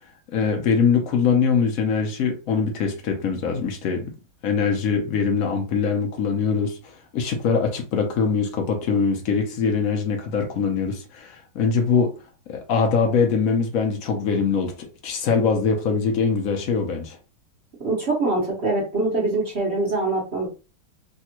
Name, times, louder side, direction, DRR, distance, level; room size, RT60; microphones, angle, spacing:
voice 1, 0.3-4.1 4.4-12.1 12.5-17.2, left 5 dB, 80° left, 0.7 m, -23 dB
voice 2, 17.8-20.5, right 2 dB, 45° right, 0.8 m, -23 dB
3.4 x 2.3 x 2.9 m
omnidirectional pair, 2.3 m